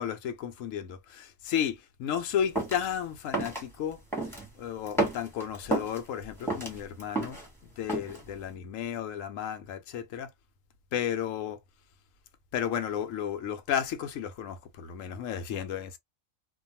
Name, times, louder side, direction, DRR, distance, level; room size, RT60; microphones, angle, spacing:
voice 1, 0.0-4.0 4.6-7.4 7.8-10.3 10.9-11.6 12.5-16.0, left 9 dB, 75° left, 1.0 m, -33 dB
sound 1, 2.6-2.8 3.3-3.6 4.1-4.5 4.9-6.0 6.4-7.5 7.9-8.2, right 2 dB, ahead, 1.1 m, -30 dB
2.5 x 2.3 x 2.6 m
omnidirectional pair, 1.4 m